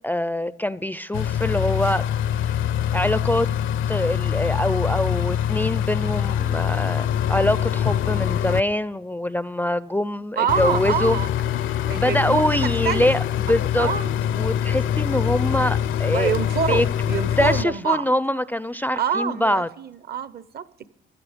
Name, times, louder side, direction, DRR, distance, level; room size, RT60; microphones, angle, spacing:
voice 1, 0.0-2.0 2.9-3.5 3.9-11.2 11.7-13.9 14.4-16.3 16.7-16.9 17.4-19.7, left 1 dB, 10° left, 0.4 m, -24 dB
sound 1, 1.1-8.6 10.5-17.6, left 10 dB, 80° left, 0.7 m, -24 dB
voice 2, 10.4-11.3 11.9-13.1 13.8-14.1 16.1-18.1 18.9-20.9, right 7 dB, 50° right, 0.8 m, -26 dB
16.0 x 12.0 x 5.0 m
cardioid pair, 90°, 20 cm